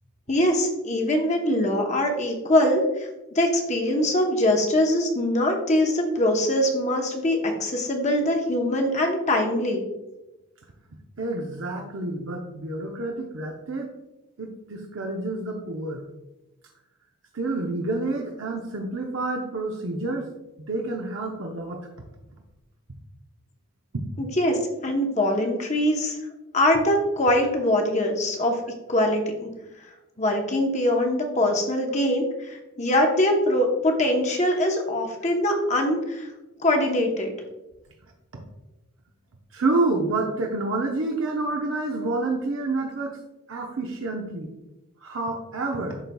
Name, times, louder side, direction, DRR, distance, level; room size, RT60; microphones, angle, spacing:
voice 1, 0.3-9.9 24.2-26.2 26.5-28.6 28.9-29.5 30.2-36.3 36.6-37.3, left 1 dB, 30° left, 2 dB, 0.9 m, -23 dB
voice 2, 11.2-13.9 14.4-16.0 17.3-20.3 20.7-21.9 23.9-24.0 39.5-43.2 43.5-44.5 45.0-46.0, right 2 dB, 70° right, 0 dB, 0.7 m, -28 dB
11.0 x 4.0 x 2.3 m, 1.0 s
head